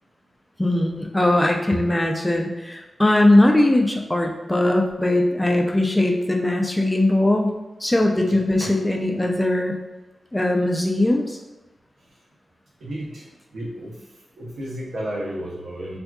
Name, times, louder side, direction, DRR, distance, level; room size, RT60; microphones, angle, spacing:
voice 1, 0.6-7.5 7.8-9.7 10.3-11.4, left 1 dB, 15° left, 2 dB, 0.4 m, -20 dB
voice 2, 8.3-8.7 12.8-13.3 13.5-14.0 14.4-16.0, right 1 dB, 90° right, -4 dB, 0.7 m, -32 dB
3.5 x 2.5 x 2.2 m, 1.0 s
wide cardioid pair, 80°, 0 cm